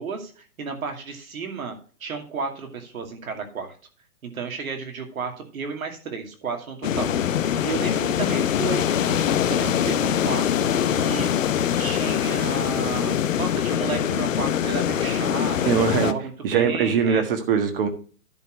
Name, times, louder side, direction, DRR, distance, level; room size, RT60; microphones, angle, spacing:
voice 1, 0.0-3.8 4.2-7.1 7.6-17.2, right 5 dB, 65° right, 4 dB, 2.6 m, -33 dB
sound 1, 6.8-16.1, left 9 dB, 60° left, 0.8 m, -23 dB
voice 2, 15.6-16.1 16.4-17.9, right 6 dB, 40° right, 8 dB, 1.6 m, -21 dB
10.5 x 4.3 x 6.5 m, 0.40 s
hypercardioid pair, 145°, 45 cm